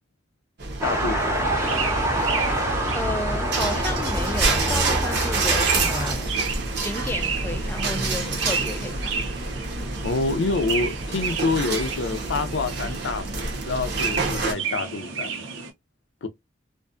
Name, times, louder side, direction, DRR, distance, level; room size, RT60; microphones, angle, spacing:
sound 1, 0.6-14.5, right 3 dB, 60° right, 0.8 m, -28 dB
voice 1, 0.8-1.5 10.0-15.4 16.2-16.3, left 3 dB, 70° left, 0.5 m, -27 dB
sound 2, 0.8-6.1, right 1 dB, 15° right, 0.7 m, -26 dB
sound 3, 1.4-15.7, right 5 dB, 90° right, 0.6 m, -33 dB
voice 2, 2.9-6.3 6.8-9.1, left 2 dB, 10° left, 0.3 m, -32 dB
2.5 x 2.3 x 2.3 m
head